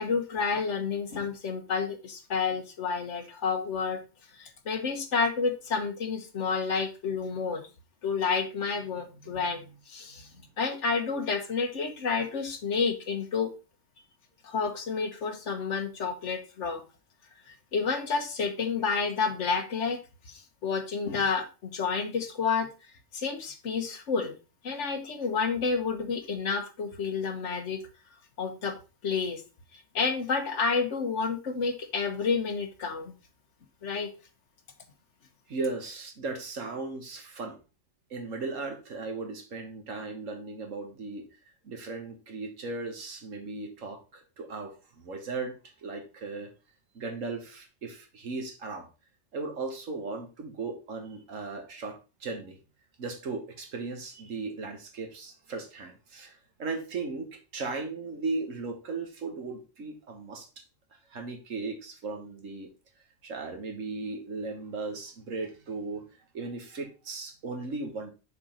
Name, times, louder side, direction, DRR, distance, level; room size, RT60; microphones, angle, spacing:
voice 1, 0.0-4.0 4.3-7.6 8.0-10.3 10.6-13.5 14.4-16.8 17.7-20.0 20.3-22.7 23.1-24.3 24.6-27.8 28.4-28.8 29.0-29.4 29.7-33.1 33.8-34.1, left 5 dB, 65° left, 6 dB, 1.4 m, -30 dB
voice 2, 8.9-9.6 10.1-10.4 35.5-37.6 38.1-41.2 41.6-45.6 45.8-46.5 47.0-48.9 49.3-52.6 53.0-60.5 61.1-62.7 63.2-66.0 66.3-68.1, right 3 dB, 80° right, 4 dB, 1.8 m, -37 dB
6.7 x 4.0 x 5.0 m, 0.31 s
omnidirectional pair, 1.3 m